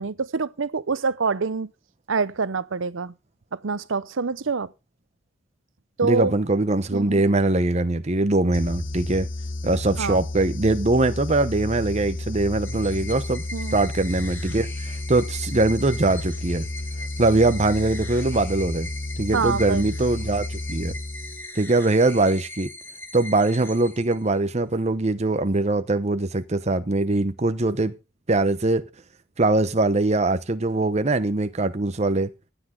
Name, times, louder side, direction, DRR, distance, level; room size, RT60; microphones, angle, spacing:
voice 1, 0.0-1.7 2.1-3.1 3.5-4.7 6.0-6.3 6.9-7.2 10.0-10.2 13.5-13.8 19.3-19.8, right 4 dB, 75° right, 0.7 m, -26 dB
voice 2, 6.0-9.3 9.6-13.4 13.7-16.7 17.2-18.9 19.2-20.9 21.5-22.7 23.1-27.9 28.3-28.9 29.4-32.3, right 2 dB, 35° right, 0.9 m, -22 dB
sound 1, 8.5-21.7, left 2 dB, 70° left, 1.0 m, -32 dB
sound 2, 12.6-24.5, left 1 dB, 10° left, 2.0 m, -40 dB
16.0 x 9.9 x 3.8 m
head